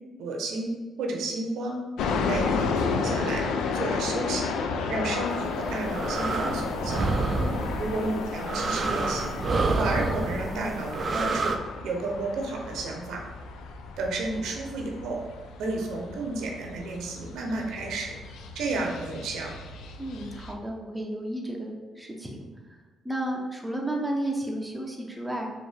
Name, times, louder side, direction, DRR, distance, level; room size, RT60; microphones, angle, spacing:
voice 1, 0.2-0.7 1.0-1.8 2.1-3.4 3.7-4.5 4.9-7.1 7.8-9.4 9.8-11.6 11.8-13.2 14.0-15.2 15.6-18.1 18.5-19.5, right 2 dB, 80° right, 0 dB, 0.7 m, -31 dB
sound 1, 2.0-20.5, left 5 dB, 85° left, 0.3 m, -33 dB
sound 2, 5.5-11.6, right 3 dB, 45° right, 0.4 m, -28 dB
voice 2, 20.0-22.8 23.0-25.5, right 1 dB, 5° right, -1 dB, 0.7 m, -33 dB
4.4 x 2.5 x 3.4 m, 1.3 s
cardioid pair, 90°, 0 cm